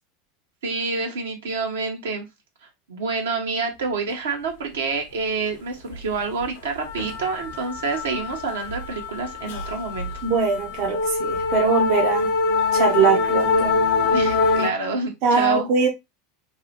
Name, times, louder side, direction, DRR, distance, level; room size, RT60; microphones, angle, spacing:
voice 1, 0.6-2.3 2.9-10.1 14.1-15.7, right 4 dB, 90° right, 0.8 m, -28 dB
sound 1, 5.9-6.1 6.4-14.7, left 4 dB, 80° left, 0.6 m, -24 dB
voice 2, 10.2-12.3 12.7-13.8 15.2-15.9, right 5 dB, 60° right, 0.5 m, -21 dB
2.6 x 2.1 x 2.8 m
hypercardioid pair, 105°, 0 cm